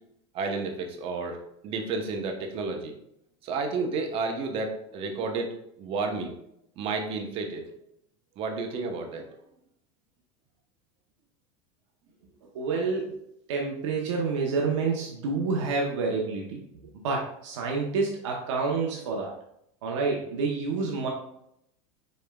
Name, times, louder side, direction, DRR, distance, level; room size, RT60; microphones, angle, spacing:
voice 1, 0.3-2.9 3.4-6.3 6.8-7.6 8.4-9.3, right 4 dB, 40° right, 3 dB, 0.9 m, -31 dB
voice 2, 12.5-13.2 13.5-16.6 17.0-19.3 19.8-21.1, right 4 dB, 90° right, -1 dB, 0.9 m, -28 dB
5.3 x 4.4 x 2.3 m, 0.75 s
supercardioid pair, 145°, 15 cm